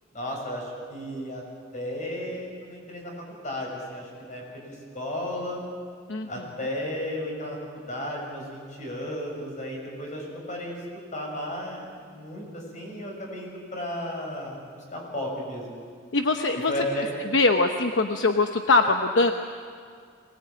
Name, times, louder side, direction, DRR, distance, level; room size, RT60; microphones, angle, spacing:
voice 1, 0.1-1.4 1.7-5.6 6.3-10.8 11.1-15.8 16.7-17.2, left 1 dB, 40° left, -1 dB, 6.5 m, -34 dB
voice 2, 16.1-16.7 17.3-19.3, left 3 dB, 70° left, 5 dB, 1.0 m, -22 dB
23.5 x 19.0 x 8.7 m, 2.1 s
head